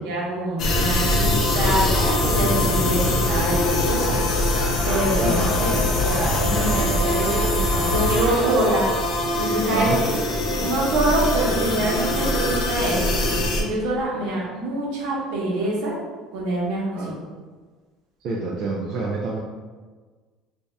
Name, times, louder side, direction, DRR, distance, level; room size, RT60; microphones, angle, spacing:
voice 1, 0.0-4.2 4.5-5.4 5.8-8.9 9.4-10.2 10.5-15.9 16.3-17.2, right 1 dB, 70° right, -3 dB, 1.1 m, -25 dB
sound 1, 0.6-13.6, left 1 dB, 40° left, 0.5 m, -22 dB
sound 2, 2.7-8.5, left 1 dB, 5° right, 1.1 m, -32 dB
voice 2, 5.2-5.9 9.7-10.0 16.9-17.1 18.2-19.4, right 2 dB, 45° right, -3 dB, 0.4 m, -27 dB
3.4 x 2.7 x 3.4 m, 1.4 s
cardioid pair, 170°, 0 cm